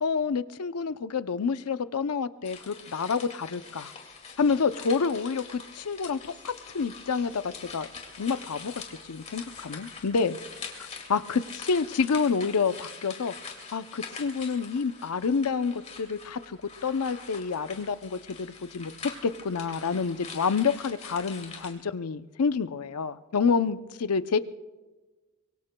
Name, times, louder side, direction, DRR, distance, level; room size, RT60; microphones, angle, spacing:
voice 1, 0.0-3.9 4.4-7.4 7.7-7.9 8.2-10.4 10.8-13.3 13.7-18.9 19.2-24.4, left 5 dB, 90° left, 12 dB, 0.6 m, -28 dB
sound 1, 2.4-21.7, left 5 dB, 30° left, 2.2 m, -44 dB
25.0 x 23.0 x 2.3 m, 1.2 s
head